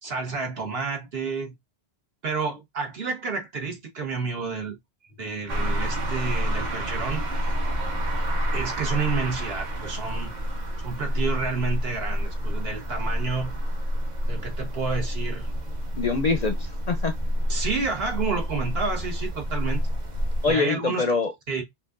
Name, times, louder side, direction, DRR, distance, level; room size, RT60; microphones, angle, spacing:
voice 1, 0.0-1.5 2.2-4.8 5.2-7.2 8.5-10.3 10.8-13.5 14.3-15.5 17.5-19.8 20.5-21.1 21.5-21.6, right 4 dB, 65° right, 1.4 m, -30 dB
sound 1, 5.5-20.5, equal, 45° right, 0.9 m, -28 dB
voice 2, 16.0-17.1 20.4-21.3, left 4 dB, 50° left, 0.5 m, -24 dB
5.4 x 2.4 x 2.5 m
omnidirectional pair, 1.1 m